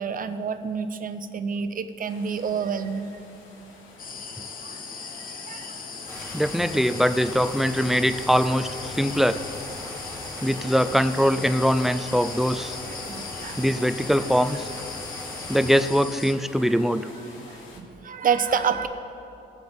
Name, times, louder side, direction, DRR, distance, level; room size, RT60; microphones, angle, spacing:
voice 1, 0.0-3.1 4.6-5.8 12.9-13.6 17.4-18.9, right 6 dB, 45° right, 10 dB, 0.7 m, -29 dB
sound 1, 2.1-17.8, left 3 dB, 85° left, 1.5 m, -47 dB
sound 2, 4.0-16.3, left 5 dB, 45° left, 1.0 m, -38 dB
sound 3, 6.1-15.9, left 1 dB, 15° left, 2.6 m, -39 dB
voice 2, 6.3-9.4 10.4-12.7 13.6-14.7 15.5-17.1, equal, ahead, 12 dB, 0.4 m, -22 dB
19.0 x 7.9 x 3.6 m, 2.8 s
cardioid pair, 90°, 20 cm